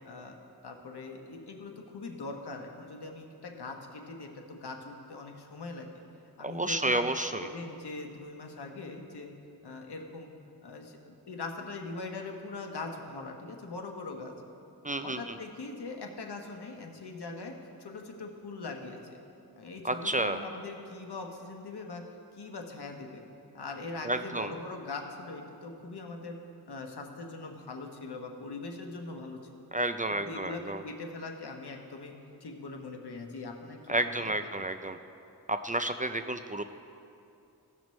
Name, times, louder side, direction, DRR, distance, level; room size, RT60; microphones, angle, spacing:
voice 1, 0.0-0.4 0.6-5.9 6.4-7.1 7.4-9.3 9.6-10.3 10.6-14.3 15.0-19.0 19.6-22.0 22.3-23.2 23.5-26.4 26.7-29.7 30.1-32.1 32.4-34.6, left 3 dB, 80° left, 3 dB, 1.1 m, -41 dB
voice 2, 6.4-7.5 14.8-15.4 19.8-20.4 24.0-24.5 29.7-30.8 33.9-35.0 35.5-36.6, right 1 dB, 20° right, 8 dB, 0.4 m, -31 dB
17.0 x 6.1 x 3.1 m, 2.7 s
wide cardioid pair, 65°, 39 cm